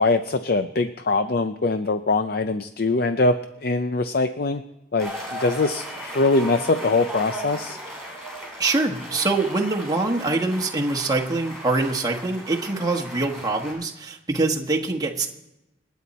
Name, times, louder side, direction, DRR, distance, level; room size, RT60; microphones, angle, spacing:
voice 1, 0.0-4.6 4.9-7.8, left 3 dB, 55° left, 9 dB, 0.5 m, -22 dB
sound 1, 5.0-13.7, right 1 dB, ahead, 6.3 m, -36 dB
voice 2, 8.6-15.3, right 2 dB, 20° right, 1 dB, 1.3 m, -24 dB
28.0 x 9.4 x 4.2 m, 0.92 s
head